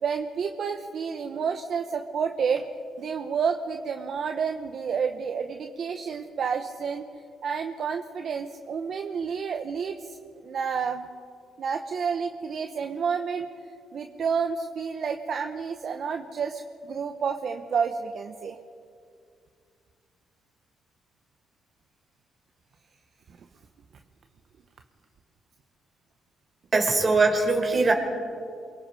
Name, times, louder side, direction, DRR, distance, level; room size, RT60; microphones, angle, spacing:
voice 1, 0.0-2.7 3.0-7.1 7.4-10.2 10.4-11.1 11.6-18.6, right 6 dB, 60° right, 6 dB, 1.1 m, -30 dB
voice 2, 26.7-27.9, right 3 dB, 35° right, 3 dB, 4.8 m, -21 dB
28.0 x 23.5 x 5.0 m, 2.3 s
cardioid pair, 90°, 0 cm